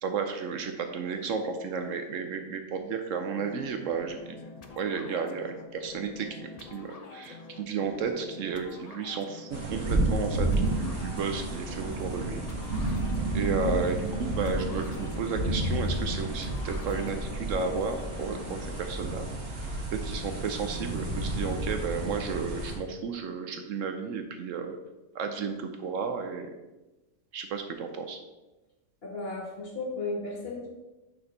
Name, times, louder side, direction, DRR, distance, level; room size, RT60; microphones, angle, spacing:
voice 1, 0.0-4.4 4.7-10.5 10.8-12.4 13.3-19.3 19.9-24.8 25.1-26.5 27.3-28.2, right 5 dB, 70° right, 6 dB, 0.9 m, -33 dB
sound 1, 3.3-18.9, left 4 dB, 80° left, 0.3 m, -46 dB
sound 2, 9.5-22.7, right 1 dB, 55° right, 1.4 m, -31 dB
voice 2, 29.0-30.7, left 2 dB, 45° left, -1 dB, 1.5 m, -34 dB
6.6 x 4.3 x 4.1 m, 1.1 s
omnidirectional pair, 1.5 m